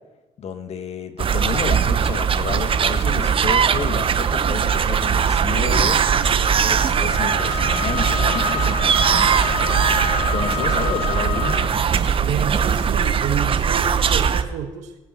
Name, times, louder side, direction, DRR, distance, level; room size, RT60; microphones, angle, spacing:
voice 1, 0.4-6.1 6.6-9.3 10.3-11.6, left 6 dB, 60° left, 8 dB, 1.5 m, -31 dB
sound 1, 1.2-14.4, right 7 dB, 45° right, 0.9 m, -20 dB
Wind instrument woodwind instrument, 7.1-11.8, left 17 dB, 80° left, 0.4 m, -29 dB
voice 2, 12.2-15.0, right 8 dB, 80° right, 7 dB, 1.5 m, -29 dB
19.5 x 8.9 x 4.3 m, 1.1 s
supercardioid pair, 65°, 12 cm